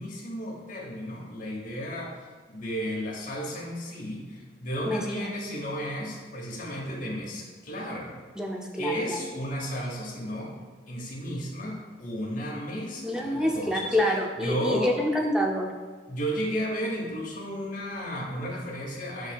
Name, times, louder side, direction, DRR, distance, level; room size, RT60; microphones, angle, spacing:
voice 1, 0.0-2.1 2.5-8.2 8.8-10.6 10.9-14.0 14.4-15.1 16.1-19.3, equal, 50° left, -3 dB, 0.9 m, -33 dB
voice 2, 4.8-5.3 8.3-9.2 13.0-15.7, left 1 dB, 5° right, 0 dB, 0.4 m, -27 dB
8.0 x 2.7 x 2.2 m, 1.4 s
head